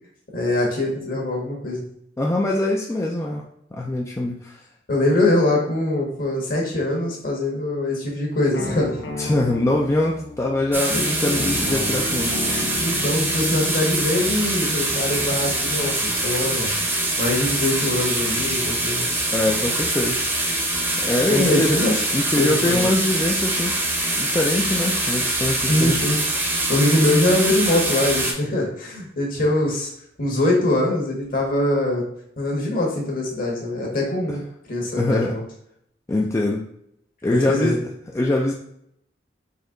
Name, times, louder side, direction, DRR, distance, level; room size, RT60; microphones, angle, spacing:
voice 1, 0.3-1.8 4.9-9.0 10.9-11.4 12.8-19.1 21.3-22.0 22.4-22.9 25.7-26.2 26.7-29.9 30.2-32.1 32.4-34.4 34.7-35.4 37.3-37.7, left 1 dB, 50° left, 0 dB, 1.3 m, -23 dB
voice 2, 2.2-3.4 3.7-4.6 9.2-12.7 19.3-20.2 21.0-21.8 22.1-23.7 24.2-26.0 35.0-35.3 36.1-36.6 37.2-37.8 38.1-38.5, left 2 dB, 15° left, -1 dB, 0.4 m, -23 dB
sound 1, 8.5-16.0, left 1 dB, 80° left, 0.9 m, -33 dB
sound 2, 10.7-28.3, right 1 dB, 10° right, 0.8 m, -24 dB
4.2 x 2.9 x 3.7 m, 0.72 s
head